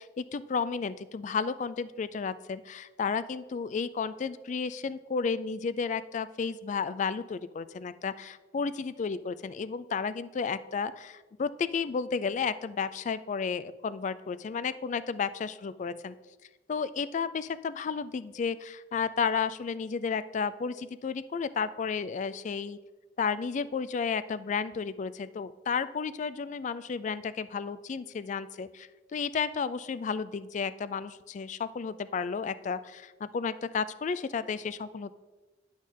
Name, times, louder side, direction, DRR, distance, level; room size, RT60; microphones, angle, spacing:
voice 1, 0.0-16.1 16.7-22.8 23.2-35.1, left 5 dB, 40° left, 15 dB, 0.3 m, -32 dB
10.5 x 6.3 x 3.7 m, 1.2 s
head